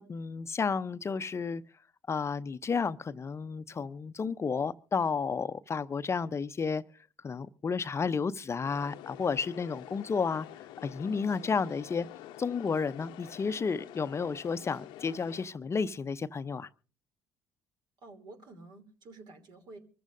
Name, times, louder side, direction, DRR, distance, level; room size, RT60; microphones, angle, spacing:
voice 1, 0.0-1.6 2.1-6.8 7.2-10.5 10.8-12.1 12.4-16.7, left 5 dB, 35° left, 0.7 m, -32 dB
sound 1, 8.6-15.5, left 13 dB, 70° left, 0.8 m, -48 dB
voice 2, 18.0-19.8, right 2 dB, 60° right, 3.0 m, -50 dB
24.5 x 14.5 x 2.6 m
hypercardioid pair, 55°, 8 cm